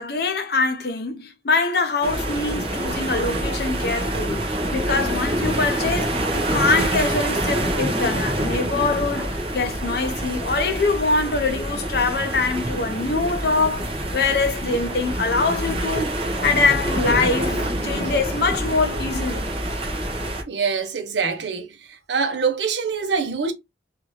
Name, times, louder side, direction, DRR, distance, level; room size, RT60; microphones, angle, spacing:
voice 1, 0.0-16.1 16.4-19.5, left 3 dB, 60° left, 0.6 m, -24 dB
sound 1, 2.0-20.4, right 1 dB, 30° right, 0.7 m, -26 dB
voice 2, 20.5-21.7 22.1-23.5, right 5 dB, 75° right, 0.7 m, -24 dB
2.8 x 2.5 x 3.0 m
head